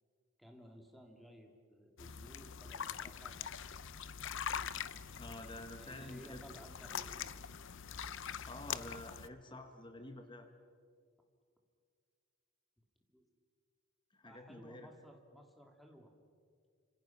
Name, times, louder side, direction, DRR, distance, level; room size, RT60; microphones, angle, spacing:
voice 1, 0.4-4.1 5.8-7.4 13.1-13.3 14.2-16.1, equal, ahead, 2 dB, 2.9 m, -57 dB
sound 1, 2.0-9.3, left 8 dB, 60° left, 0.8 m, -43 dB
voice 2, 5.2-6.6 8.5-10.5 14.1-14.9, left 1 dB, 25° left, 6 dB, 1.6 m, -49 dB
29.5 x 26.5 x 6.1 m, 2.1 s
head